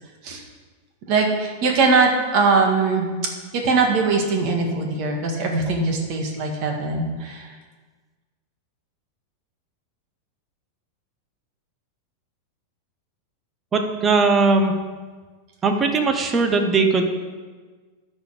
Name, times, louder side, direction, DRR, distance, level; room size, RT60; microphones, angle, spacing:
voice 1, 1.1-3.1 3.5-7.6, right 4 dB, 45° right, 2 dB, 1.8 m, -21 dB
voice 2, 13.7-14.7 15.6-17.0, right 3 dB, 15° right, 5 dB, 0.9 m, -19 dB
13.0 x 5.3 x 5.0 m, 1.4 s
supercardioid pair, 160°, 0 cm